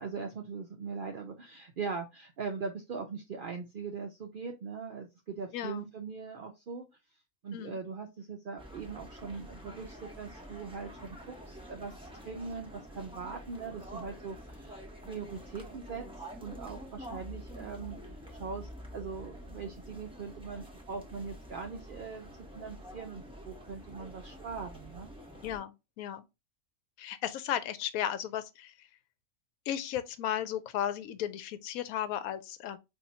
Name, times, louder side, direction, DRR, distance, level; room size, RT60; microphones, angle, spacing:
voice 1, 0.0-6.9 7.4-16.1 16.4-18.0 18.3-25.1, right 5 dB, 75° right, 0.4 m, -41 dB
voice 2, 5.5-5.9 7.5-7.8 25.4-26.2 27.0-28.7 29.7-32.8, left 10 dB, 75° left, 1.0 m, -35 dB
sound 1, 8.6-25.6, equal, 5° right, 0.7 m, -47 dB
4.2 x 2.6 x 2.6 m
omnidirectional pair, 1.5 m